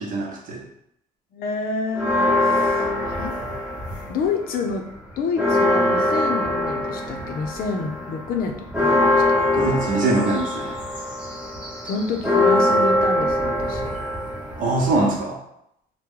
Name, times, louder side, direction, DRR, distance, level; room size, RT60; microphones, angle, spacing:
voice 1, 0.0-0.6 9.6-10.8 14.6-15.4, right 2 dB, 55° right, -2 dB, 0.9 m, -23 dB
voice 2, 1.3-2.1 2.4-3.4 4.1-4.9 5.2-9.2 11.8-13.9, left 4 dB, 60° left, 3 dB, 0.5 m, -28 dB
sound 1, 1.9-4.3 4.7-15.2, left 1 dB, 5° right, 0.9 m, -23 dB
2.9 x 2.1 x 3.6 m, 0.76 s
cardioid pair, 110°, 17 cm